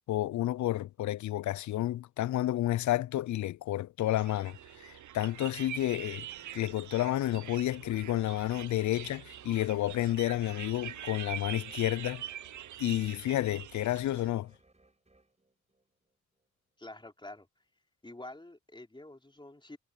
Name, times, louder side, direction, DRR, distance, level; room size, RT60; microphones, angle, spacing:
voice 1, 0.1-6.3 6.5-12.3 12.8-14.5, left 14 dB, 70° left, 0.5 m, -31 dB
sound 1, 4.2-14.3, right 11 dB, 70° right, 0.7 m, -44 dB
sound 2, 5.3-16.5, right 2 dB, 20° right, 5.8 m, -66 dB
voice 2, 16.8-17.5 18.0-19.8, left 2 dB, 15° left, 3.7 m, -47 dB
cardioid pair, 60°, 31 cm